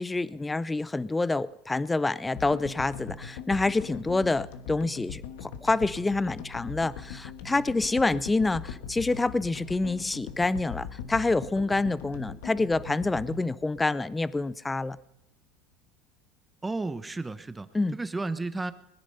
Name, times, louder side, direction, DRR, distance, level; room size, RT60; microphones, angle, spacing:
voice 1, 0.0-15.0 17.7-18.0, left 3 dB, 10° left, 18 dB, 0.5 m, -27 dB
sound 1, 2.4-14.7, left 7 dB, 85° left, 1.3 m, -41 dB
voice 2, 16.6-18.7, right 3 dB, 10° right, 12 dB, 0.8 m, -33 dB
20.5 x 10.0 x 5.5 m, 0.84 s
supercardioid pair, 115°, 0 cm